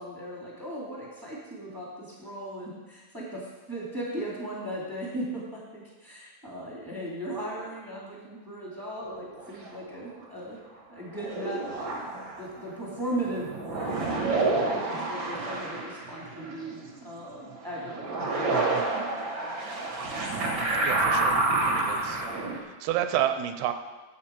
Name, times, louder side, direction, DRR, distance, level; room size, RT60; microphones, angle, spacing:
voice 1, 0.0-10.6 10.9-18.6, right 1 dB, 15° right, -6 dB, 0.8 m, -37 dB
sound 1, 9.0-9.8 11.2-12.6 13.1-17.1 17.5-22.6, right 2 dB, 65° right, 1.1 m, -29 dB
voice 2, 20.8-21.4 21.6-22.3 22.6-23.7, right 11 dB, 85° right, 9 dB, 2.5 m, -29 dB
11.5 x 8.2 x 4.4 m, 1.2 s
omnidirectional pair, 4.7 m